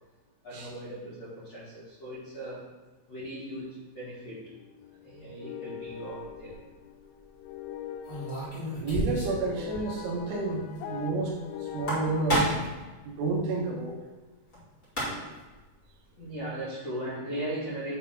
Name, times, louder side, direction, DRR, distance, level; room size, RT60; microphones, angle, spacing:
voice 1, 0.4-2.6 3.1-3.7 3.9-4.4 5.0-6.6 16.2-17.9, right 1 dB, 50° left, -10 dB, 2.0 m, -38 dB
sound 1, 4.2-12.2, left 10 dB, 85° left, 3.0 m, -42 dB
sound 2, 6.2-6.5 8.0-9.5 9.7-9.8 10.1-10.2 11.6-12.8 14.5-14.6 14.8-15.4, right 1 dB, 35° left, 0.9 m, -30 dB
voice 2, 8.8-12.5 13.0-14.0 15.0-15.2, right 3 dB, 80° right, 0 dB, 3.1 m, -30 dB
7.4 x 4.1 x 5.6 m, 1.2 s
omnidirectional pair, 5.7 m